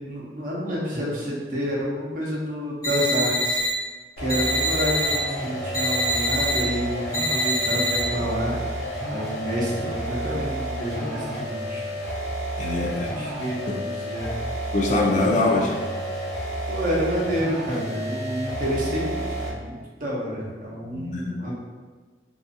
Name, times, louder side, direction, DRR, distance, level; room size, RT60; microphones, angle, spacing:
voice 1, 0.0-3.7 4.2-8.6 9.1-11.9 13.0-14.5 16.7-21.5, equal, 50° right, -4 dB, 0.6 m, -29 dB
sound 1, 2.8-3.7 4.3-5.2 5.7-6.6 7.1-8.0, equal, 20° left, 0.7 m, -24 dB
sound 2, 4.2-19.7, right 1 dB, 60° left, 0.7 m, -31 dB
voice 2, 12.6-13.1 13.7-13.8 14.7-15.7 20.8-21.4, left 2 dB, 45° left, 0 dB, 0.3 m, -23 dB
2.6 x 2.4 x 2.4 m, 1.4 s
head